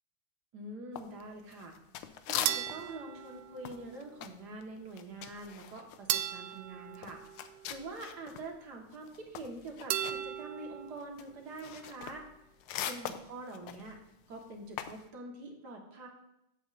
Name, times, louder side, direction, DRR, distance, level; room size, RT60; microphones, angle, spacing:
voice 1, 0.5-1.7 2.3-7.2 7.7-12.3 12.8-14.0 14.3-16.1, right 2 dB, 50° right, 0 dB, 2.0 m, -45 dB
sound 1, 1.0-3.0 3.2-8.5 8.8-15.1, left 10 dB, 80° left, 1.5 m, -42 dB
sound 2, 2.5-4.0 6.1-7.9 9.9-11.0, right 11 dB, 85° right, 0.9 m, -36 dB
13.5 x 8.4 x 2.5 m, 0.84 s
omnidirectional pair, 2.4 m